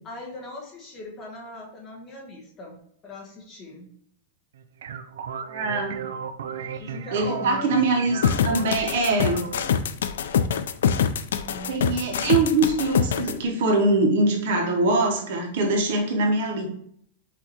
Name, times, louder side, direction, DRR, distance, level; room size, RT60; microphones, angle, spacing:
voice 1, 0.0-3.9 6.7-7.8 11.3-11.8, left 2 dB, 20° left, -2 dB, 1.1 m, -40 dB
sound 1, 4.5-9.8, right 7 dB, 90° right, 0.4 m, -35 dB
voice 2, 5.4-6.0 7.1-9.4 11.7-16.7, right 2 dB, 60° right, 2 dB, 1.1 m, -23 dB
sound 2, 8.2-13.3, left 7 dB, 85° left, 0.3 m, -24 dB
5.9 x 2.7 x 2.9 m, 0.66 s
supercardioid pair, 165°, 0 cm